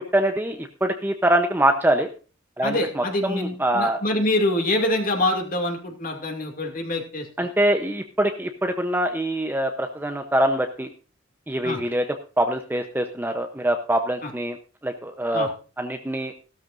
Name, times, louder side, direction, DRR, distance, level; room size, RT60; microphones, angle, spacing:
voice 1, 0.1-2.1 2.6-4.0 7.4-10.9 11.5-12.1 12.4-14.6 14.8-15.5 15.8-16.3, right 1 dB, 10° right, 5 dB, 0.7 m, -24 dB
voice 2, 2.6-7.3 11.6-11.8 14.2-14.3 15.3-15.5, left 1 dB, 45° left, 3 dB, 2.4 m, -25 dB
15.0 x 13.0 x 2.6 m, 0.36 s
head